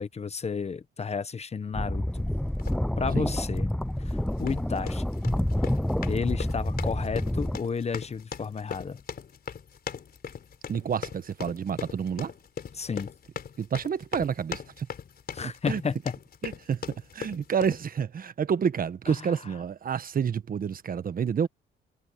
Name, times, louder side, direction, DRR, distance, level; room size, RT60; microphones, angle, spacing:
voice 1, 0.0-2.2 3.0-3.7 4.0-5.0 6.1-9.0 12.7-13.1 15.3-16.2 19.1-19.5, left 5 dB, 30° left, 1.0 m, -32 dB
sound 1, 1.7-7.6, left 1 dB, 5° left, 0.4 m, -28 dB
sound 2, 2.6-2.8 3.3-3.6 4.3-17.8, left 7 dB, 50° left, 4.3 m, -40 dB
voice 2, 10.7-12.3 13.6-14.9 15.7-15.8 16.4-16.8 17.1-21.5, right 7 dB, 45° right, 1.3 m, -29 dB
cardioid pair, 90°, 20 cm